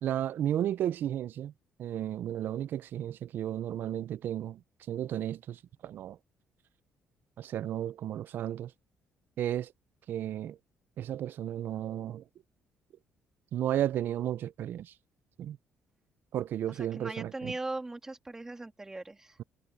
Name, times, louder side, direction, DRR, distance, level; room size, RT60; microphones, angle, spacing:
voice 1, 0.0-1.5 1.8-4.6 4.9-6.2 7.4-8.7 9.4-9.7 10.1-10.6 11.0-12.2 13.5-14.9 15.4-15.6 16.3-17.5, right 11 dB, 60° right, 0.4 m, -33 dB
voice 2, 16.7-19.4, right 2 dB, 15° right, 2.7 m, -39 dB
cardioid pair, 135°, 4 cm